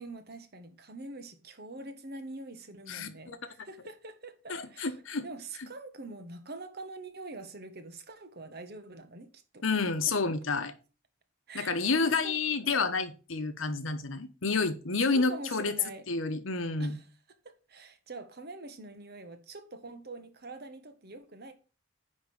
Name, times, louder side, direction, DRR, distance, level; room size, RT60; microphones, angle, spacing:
voice 1, 0.0-4.9 5.2-9.6 11.5-12.4 12.6-13.0 15.0-16.0 16.8-17.1 17.4-21.5, right 2 dB, 55° right, 1.3 m, -45 dB
voice 2, 2.9-3.4 4.5-5.2 5.6-5.7 9.6-10.7 11.5-15.7 16.1-17.0, left 4 dB, 85° left, 1.1 m, -29 dB
10.0 x 3.7 x 6.5 m
head